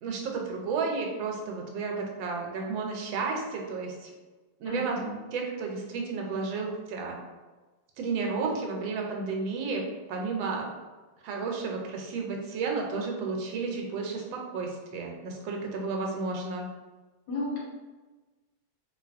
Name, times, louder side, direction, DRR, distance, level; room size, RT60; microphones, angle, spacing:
voice 1, 0.0-4.1 4.6-5.0 5.3-7.2 8.0-9.8 10.1-10.7 11.2-16.7, right 4 dB, 80° right, 1 dB, 1.4 m, -32 dB
voice 2, 4.6-5.2 17.3-17.6, left 1 dB, 65° left, -6 dB, 1.8 m, -32 dB
3.9 x 2.9 x 2.4 m, 1.2 s
omnidirectional pair, 2.1 m